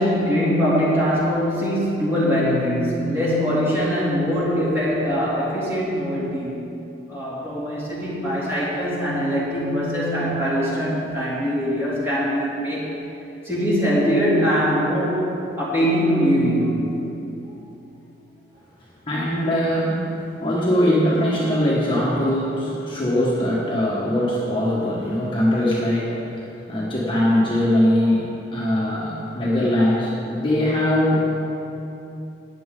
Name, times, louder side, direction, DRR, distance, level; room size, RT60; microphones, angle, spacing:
voice 1, 0.0-6.8 7.1-12.9 13.4-16.9, equal, 15° right, -8 dB, 3.0 m, -22 dB
voice 2, 19.1-28.3 28.5-31.4, left 1 dB, 25° left, -7 dB, 1.6 m, -21 dB
15.0 x 9.6 x 3.9 m, 2.8 s
head